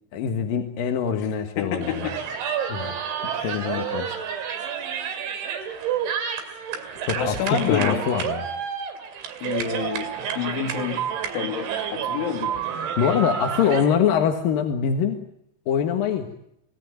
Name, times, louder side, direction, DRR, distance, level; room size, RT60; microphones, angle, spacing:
voice 1, 0.1-2.1 2.7-3.0 3.3-4.6 7.0-8.5 13.0-15.2 15.7-16.3, left 7 dB, 60° left, 5 dB, 2.8 m, -24 dB
voice 2, 1.6-2.2 3.3-3.9 7.2-8.0 9.4-11.0 11.3-12.5, left 9 dB, 90° left, 5 dB, 4.9 m, -29 dB
sound 1, 1.8-13.8, right 8 dB, 75° right, 4.8 m, -29 dB
27.5 x 18.0 x 9.5 m, 0.77 s
omnidirectional pair, 5.3 m